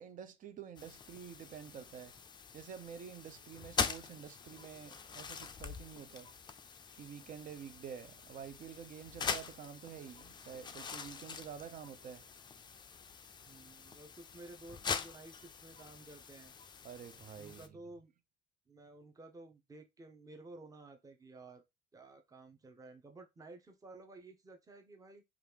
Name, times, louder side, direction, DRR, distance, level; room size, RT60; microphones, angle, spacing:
voice 1, 0.0-2.1 2.5-6.3 7.0-12.2 16.8-17.6, right 8 dB, 50° right, 0.6 m, -49 dB
sound 1, 0.8-17.7, left 6 dB, 25° left, 0.4 m, -44 dB
voice 2, 13.4-16.5 17.4-18.1 18.7-21.6 21.9-25.2, right 2 dB, 20° right, 0.8 m, -54 dB
3.0 x 2.4 x 3.4 m
cardioid pair, 110°, 17 cm